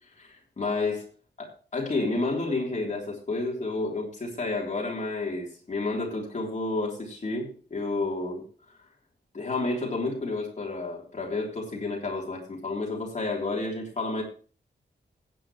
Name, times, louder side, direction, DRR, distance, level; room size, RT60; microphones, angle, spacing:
voice 1, 0.2-1.1 1.4-8.4 9.3-14.2, left 3 dB, 40° left, -1 dB, 3.5 m, -30 dB
16.5 x 9.4 x 3.1 m, 0.39 s
wide cardioid pair, 160°, 19 cm